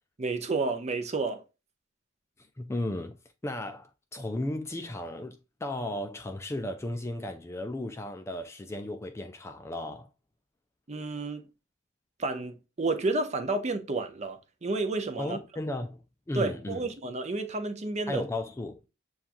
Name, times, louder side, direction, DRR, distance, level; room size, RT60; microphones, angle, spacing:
voice 1, 0.2-1.4 10.9-11.5 12.2-15.4 16.3-18.2, right 3 dB, 35° right, 0.6 m, -31 dB
voice 2, 2.6-3.2 3.4-10.1 15.2-16.0 16.3-16.9 18.1-18.8, left 1 dB, 15° left, 0.3 m, -35 dB
7.1 x 2.4 x 2.5 m
head